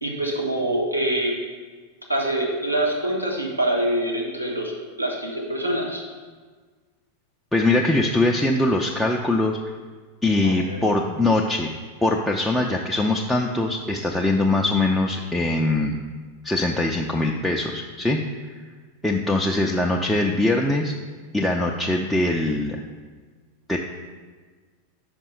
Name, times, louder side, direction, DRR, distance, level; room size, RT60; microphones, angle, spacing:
voice 1, 0.0-1.3 2.1-4.7 5.0-6.0 10.4-10.8, right 1 dB, 90° right, -3 dB, 1.2 m, -25 dB
voice 2, 7.5-9.6 10.2-11.7 12.0-16.0 16.4-18.2 18.5-18.6 19.0-20.9 21.3-22.8 23.7-23.8, left 2 dB, 5° left, -1 dB, 0.4 m, -22 dB
5.3 x 5.1 x 5.4 m, 1.4 s
figure-of-eight pair, 90°, 0 cm